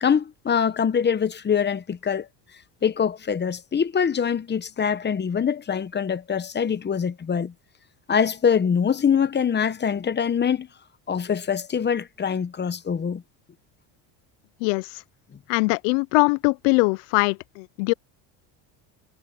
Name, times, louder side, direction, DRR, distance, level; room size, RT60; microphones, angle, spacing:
voice 1, 0.0-2.3 2.8-7.5 8.1-10.7 11.1-13.2, left 7 dB, 20° left, 0.9 m, -24 dB
voice 2, 14.6-15.0 15.5-17.9, left 31 dB, 80° left, 0.6 m, -22 dB
cardioid pair, 125°, 50 cm